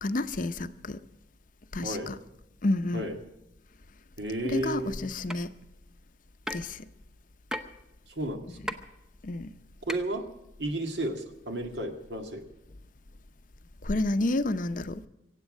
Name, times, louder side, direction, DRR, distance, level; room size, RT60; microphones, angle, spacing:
voice 1, 0.0-1.0 1.7-2.2 2.6-3.1 4.4-5.5 6.5-6.9 9.2-9.5 13.8-15.0, left 2 dB, 45° left, 0.7 m, -30 dB
voice 2, 1.8-2.1 2.9-3.2 4.2-5.0 8.1-8.6 9.9-10.2 10.6-12.4, right 1 dB, 70° right, 1.9 m, -33 dB
sound 1, 5.3-5.4 6.5-6.7 7.5-7.7 8.7-8.8 9.9-10.0, equal, 5° right, 0.8 m, -33 dB
24.5 x 8.4 x 6.4 m
head